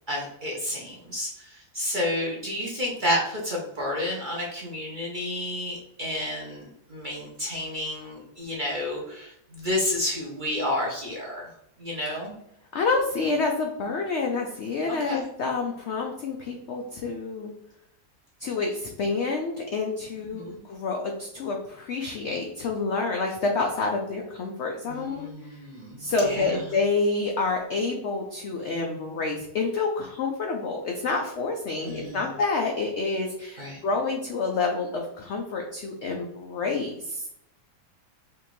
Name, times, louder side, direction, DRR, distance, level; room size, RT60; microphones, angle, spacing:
voice 1, 0.1-1.3 1.7-11.5 11.8-12.4 15.0-15.2 20.3-20.6 24.9-26.6 31.8-32.2 33.6-33.8, left 1 dB, 40° right, -3 dB, 0.7 m, -30 dB
voice 2, 12.7-17.5 18.4-25.3 26.0-37.3, left 3 dB, 75° left, 1 dB, 0.6 m, -28 dB
4.8 x 2.6 x 3.0 m, 0.76 s
omnidirectional pair, 1.7 m